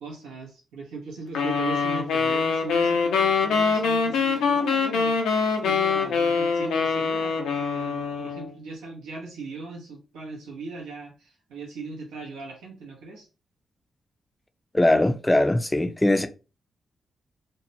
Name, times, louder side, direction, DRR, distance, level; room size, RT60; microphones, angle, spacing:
voice 1, 0.0-13.3, right 3 dB, 85° right, 0.7 m, -39 dB
sound 1, 1.3-8.5, left 5 dB, 80° left, 0.5 m, -24 dB
voice 2, 14.7-16.3, left 1 dB, 15° left, 0.4 m, -21 dB
2.7 x 2.0 x 2.5 m
supercardioid pair, 45°, 0 cm